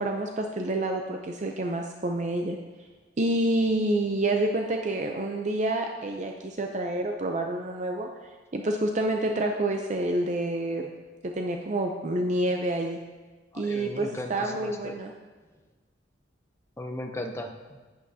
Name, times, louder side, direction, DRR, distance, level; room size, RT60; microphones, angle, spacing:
voice 1, 0.0-2.6 3.2-8.1 8.5-10.9 11.2-13.0 13.5-15.1, right 1 dB, 40° right, 3 dB, 0.5 m, -28 dB
voice 2, 13.5-15.0 16.8-17.8, left 1 dB, 15° left, 3 dB, 0.6 m, -37 dB
11.5 x 8.7 x 2.8 m, 1.3 s
head